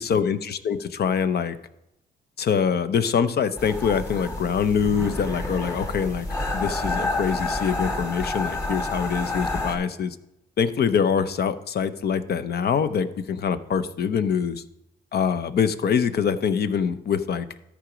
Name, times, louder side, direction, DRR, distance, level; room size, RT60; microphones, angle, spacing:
voice 1, 0.0-1.6 2.4-6.3 6.5-10.2 10.6-14.6 15.1-17.5, left 7 dB, 55° left, 12 dB, 0.7 m, -24 dB
sound 1, 3.6-9.8, left 2 dB, 15° left, 2.4 m, -29 dB
13.0 x 4.9 x 5.0 m, 0.89 s
cardioid pair, 90°, 20 cm